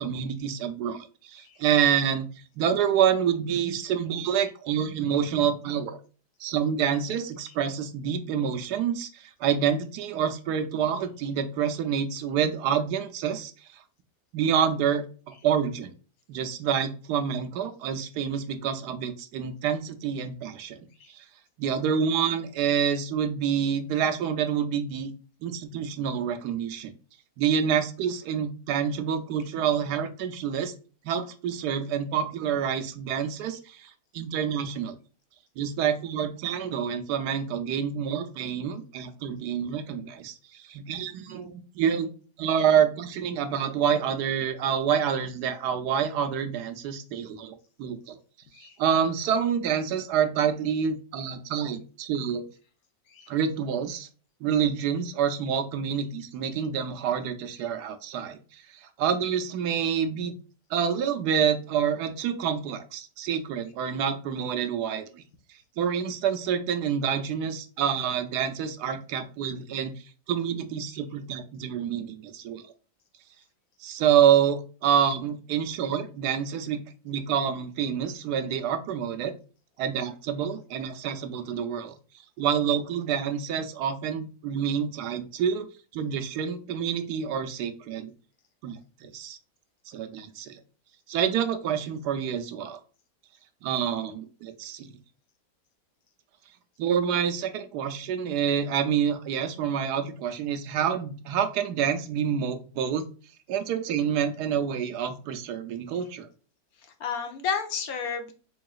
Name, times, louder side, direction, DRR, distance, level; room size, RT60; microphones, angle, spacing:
voice 1, 0.0-6.0 6.4-13.8 14.3-15.9 16.3-20.8 21.1-21.2 21.6-25.1 25.4-26.9 27.4-30.7 31.0-35.0 35.6-42.1 42.4-48.2 48.6-52.4 53.3-54.1 54.4-60.3 60.7-65.2 65.8-72.6 73.8-79.3 79.8-81.9 82.4-85.7 85.9-88.1 88.6-89.4 89.9-90.6 91.1-92.8 93.6-94.9 96.8-103.1 103.5-106.3, right 8 dB, 75° right, 7 dB, 1.1 m, -27 dB
voice 2, 107.0-108.3, left 6 dB, 65° left, 5 dB, 1.1 m, -31 dB
3.9 x 3.6 x 2.3 m, 0.38 s
omnidirectional pair, 1.8 m